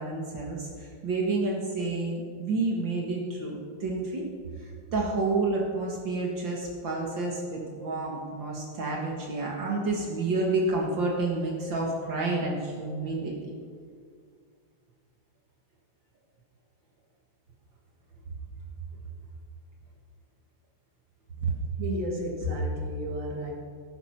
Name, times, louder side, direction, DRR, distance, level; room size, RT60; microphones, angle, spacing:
voice 1, 0.0-4.3 4.6-13.3 21.4-21.5, right 3 dB, 65° right, -2 dB, 2.4 m, -29 dB
voice 2, 21.8-23.5, equal, 40° right, -1 dB, 2.7 m, -31 dB
17.5 x 9.6 x 5.9 m, 2.1 s
omnidirectional pair, 2.2 m